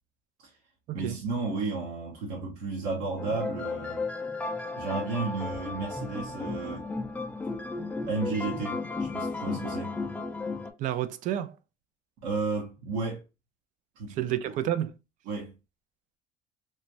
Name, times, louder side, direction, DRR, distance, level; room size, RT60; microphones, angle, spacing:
voice 1, 0.9-4.0 4.8-6.9 8.1-9.9 12.2-13.2 14.0-14.2 15.3-15.5, right 3 dB, 85° right, 1.0 m, -33 dB
sound 1, 3.2-10.7, left 3 dB, 10° left, 0.4 m, -34 dB
voice 2, 10.8-11.6 14.1-15.0, right 12 dB, 60° right, 0.4 m, -30 dB
3.2 x 2.1 x 2.5 m
cardioid pair, 130°, 15 cm